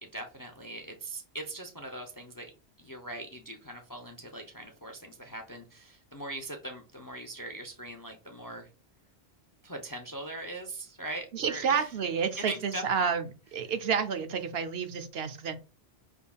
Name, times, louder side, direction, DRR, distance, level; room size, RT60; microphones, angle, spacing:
voice 1, 0.1-2.5 2.8-8.7 9.6-11.9 12.4-13.1, right 2 dB, 30° left, 4 dB, 0.4 m, -41 dB
voice 2, 11.3-15.6, right 6 dB, 70° right, 8 dB, 0.8 m, -30 dB
5.8 x 3.5 x 2.3 m, 0.32 s
omnidirectional pair, 1.1 m